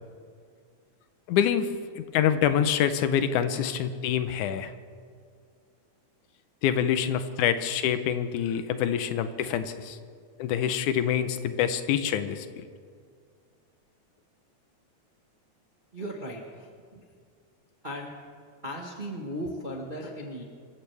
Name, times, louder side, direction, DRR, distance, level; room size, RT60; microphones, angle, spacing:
voice 1, 1.3-1.7 2.0-4.7 6.6-10.0 10.4-12.5, left 9 dB, 85° left, 11 dB, 2.2 m, -26 dB
voice 2, 15.9-17.0 17.8-18.1 18.6-20.4, equal, 40° right, 0 dB, 0.7 m, -37 dB
26.0 x 14.5 x 3.4 m, 2.1 s
omnidirectional pair, 3.4 m